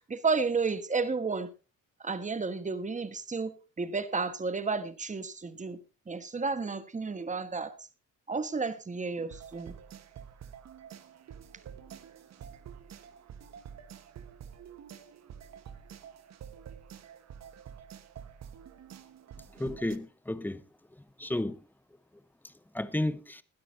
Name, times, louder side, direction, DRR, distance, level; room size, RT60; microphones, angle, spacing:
voice 1, 0.0-1.5 2.0-5.8 6.1-7.7 8.3-9.7, right 4 dB, 25° right, 1.4 m, -32 dB
sound 1, 9.3-20.0, right 8 dB, 60° right, 1.4 m, -48 dB
voice 2, 19.5-20.6 21.2-21.6 22.4-23.4, left 1 dB, 5° left, 0.9 m, -33 dB
20.0 x 12.5 x 2.7 m
cardioid pair, 90°, 30 cm